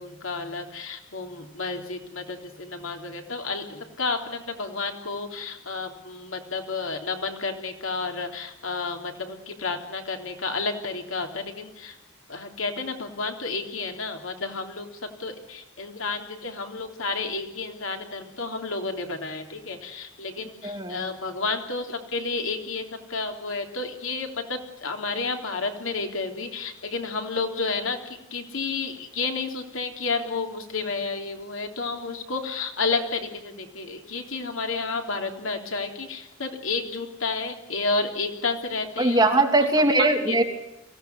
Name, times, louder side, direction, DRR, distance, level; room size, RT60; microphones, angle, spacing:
voice 1, 0.0-11.9 12.3-14.9 15.2-39.3 39.6-39.7 40.3-40.4, left 4 dB, 75° left, 4 dB, 3.4 m, -31 dB
voice 2, 20.6-21.0 39.0-40.4, right 2 dB, 20° right, 3 dB, 3.0 m, -20 dB
23.5 x 17.0 x 9.5 m, 0.92 s
head